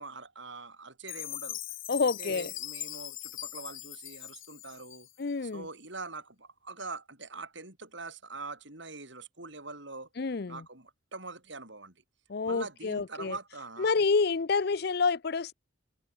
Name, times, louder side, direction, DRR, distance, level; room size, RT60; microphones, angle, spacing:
voice 1, 0.0-1.6 2.2-5.1 5.4-10.1 10.5-11.9 12.4-13.9, right 3 dB, 65° right, 6.1 m, -43 dB
Chime, 1.1-5.3, left 15 dB, 80° left, 5.6 m, -41 dB
voice 2, 1.9-2.5 5.2-5.7 10.2-10.6 12.3-13.4 13.8-15.5, left 4 dB, 50° left, 0.5 m, -28 dB
head